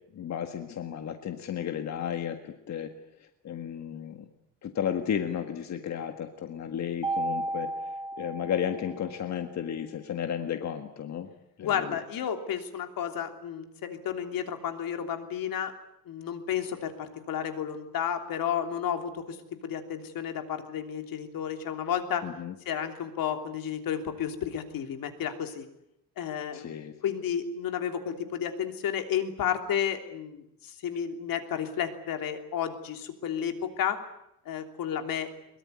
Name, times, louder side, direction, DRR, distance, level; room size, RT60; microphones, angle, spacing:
voice 1, 0.1-2.9 3.2-4.3 4.6-11.3 11.6-11.9 22.2-22.5 26.5-26.9, left 8 dB, 55° left, 6 dB, 1.8 m, -33 dB
Mallet percussion, 7.0-9.3, right 2 dB, 15° right, 1.5 m, -33 dB
voice 2, 11.6-15.7 16.0-19.4 19.6-22.3 22.6-25.6 26.2-34.0 34.4-35.3, left 9 dB, 75° left, 6 dB, 3.1 m, -32 dB
22.5 x 22.5 x 9.7 m, 0.80 s
cardioid pair, 165°, 34 cm